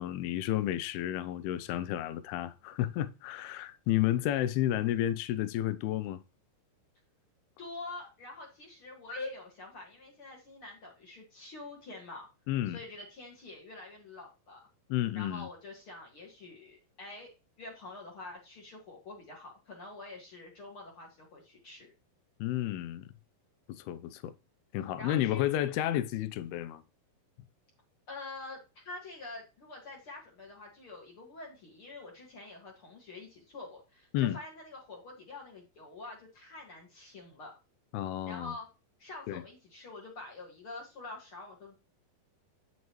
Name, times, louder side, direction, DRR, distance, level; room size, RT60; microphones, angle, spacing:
voice 1, 0.0-6.2 12.5-12.8 14.9-15.5 22.4-23.1 23.7-24.3 24.7-26.8 34.1-34.4 37.9-38.5 39.3-39.4, left 13 dB, 85° left, 2.6 m, -31 dB
voice 2, 7.6-12.3 12.7-14.6 15.1-17.3 17.6-21.9 25.0-25.5 28.1-37.5 38.3-38.7 39.0-41.7, left 2 dB, 45° left, 2.1 m, -46 dB
9.4 x 6.9 x 3.1 m
omnidirectional pair, 4.5 m